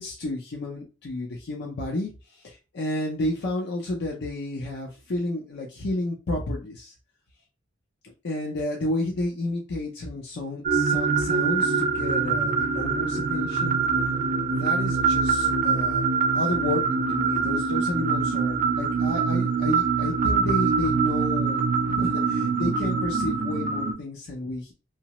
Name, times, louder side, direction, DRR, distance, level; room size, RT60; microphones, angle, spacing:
voice 1, 0.0-6.9 8.0-13.8 14.5-16.1 16.3-24.7, left 1 dB, 55° left, 0 dB, 0.5 m, -31 dB
sound 1, 10.7-23.9, right 5 dB, 40° right, 0.4 m, -24 dB
2.8 x 2.0 x 2.9 m, 0.32 s
head